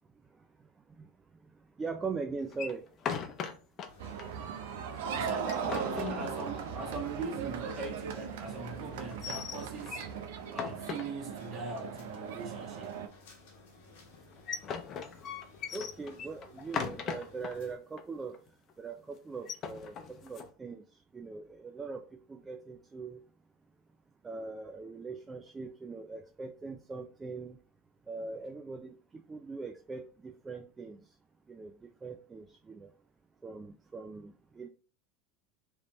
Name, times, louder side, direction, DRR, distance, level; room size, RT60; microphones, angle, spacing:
voice 1, 1.8-2.9 15.7-18.4 18.8-20.8 21.1-23.2 24.2-27.6 28.1-29.0 29.3-31.0 31.5-31.7 32.0-32.9 33.4-34.7, right 4 dB, 20° right, 0.4 m, -41 dB
sound 1, 2.5-3.9 4.2-4.3 4.6-4.7 5.2-6.8 9.0-10.1 10.5-11.6 14.1-17.6 18.0-18.1 18.3-18.7 19.3-20.5, left 7 dB, 40° left, 0.6 m, -39 dB
sound 2, 3.8-17.8, left 2 dB, 75° left, 1.1 m, -57 dB
sound 3, 4.0-13.1, right 7 dB, 75° right, 0.5 m, -38 dB
voice 2, 5.1-10.1 10.5-13.1, right 3 dB, 40° right, 1.4 m, -40 dB
3.2 x 2.6 x 2.9 m
hypercardioid pair, 90°, 0 cm